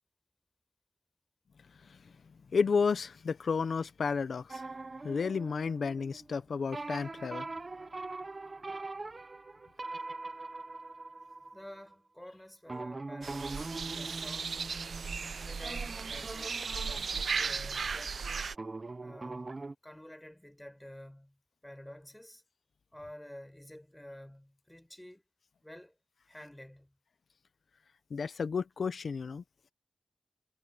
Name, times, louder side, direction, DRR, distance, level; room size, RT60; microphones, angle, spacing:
voice 1, 2.5-4.6 5.0-7.4 28.1-29.4, left 5 dB, 85° left, 0.7 m, -32 dB
sound 1, 4.5-6.4 6.7-11.9 12.7-18.1 18.5-19.7, right 3 dB, 45° right, 0.9 m, -43 dB
voice 2, 11.5-14.6 15.3-18.5 19.0-21.3 21.6-22.4 22.9-25.2 25.6-25.9 26.3-26.9, left 1 dB, 10° left, 5.9 m, -50 dB
sound 2, 13.2-18.5, right 5 dB, 80° right, 0.5 m, -36 dB
cardioid pair, 60°, 0 cm